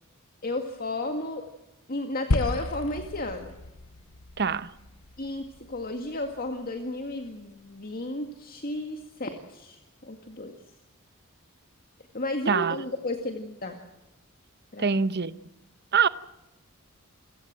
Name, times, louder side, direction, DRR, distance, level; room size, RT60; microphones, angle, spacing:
voice 1, 0.4-1.5 1.9-3.5 5.2-10.6 12.1-13.8 14.7-14.9, left 2 dB, 45° left, 2.0 m, -33 dB
sound 1, 2.3-6.7, left 2 dB, 70° left, 1.0 m, -33 dB
voice 2, 4.4-4.7 12.5-12.8 14.8-15.3 15.9-16.1, right 6 dB, 50° right, 0.9 m, -24 dB
28.5 x 17.0 x 7.6 m
head